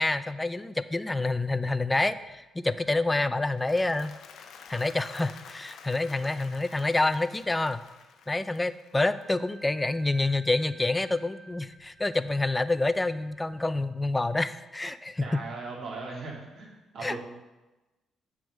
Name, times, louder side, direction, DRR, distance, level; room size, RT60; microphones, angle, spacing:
voice 1, 0.0-4.1 4.7-7.8 8.3-15.4 17.0-17.2, left 2 dB, 15° left, 14 dB, 0.3 m, -27 dB
sound 1, 2.0-2.3 2.7-3.1 3.6-4.0 4.7-5.0 5.9-6.2 7.4-7.7 9.0-13.7, right 2 dB, 45° right, 1.3 m, -55 dB
Applause, 3.4-9.8, left 6 dB, 70° left, 0.6 m, -50 dB
voice 2, 15.2-17.2, right 3 dB, 65° right, -4 dB, 2.4 m, -38 dB
7.6 x 3.6 x 6.3 m, 1.1 s
cardioid pair, 90°, 0 cm